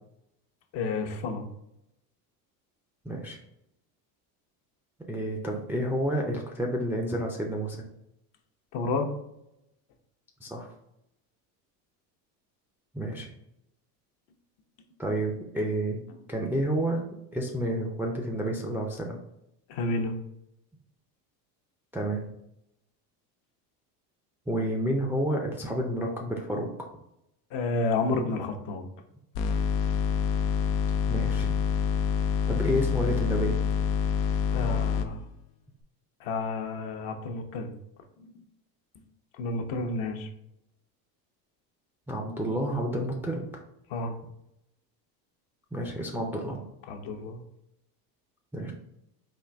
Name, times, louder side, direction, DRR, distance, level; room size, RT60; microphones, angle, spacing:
voice 1, 0.7-1.5 8.7-9.1 19.7-20.2 27.5-28.8 34.5-35.2 36.2-37.7 38.2-38.4 39.4-40.3 43.9-44.2 46.9-47.4, left 3 dB, 65° left, 4 dB, 0.8 m, -30 dB
voice 2, 3.0-3.4 5.1-7.8 10.4-10.7 12.9-13.3 15.0-16.0 16.3-17.0 17.3-19.2 21.9-22.2 24.5-26.9 31.1-31.5 32.5-33.6 42.1-43.4 45.7-46.6 48.5-48.7, right 1 dB, 5° right, -1 dB, 0.3 m, -30 dB
sound 1, 29.3-35.1, left 7 dB, 90° left, 0.5 m, -26 dB
4.0 x 2.5 x 3.3 m, 0.81 s
hypercardioid pair, 85°, 49 cm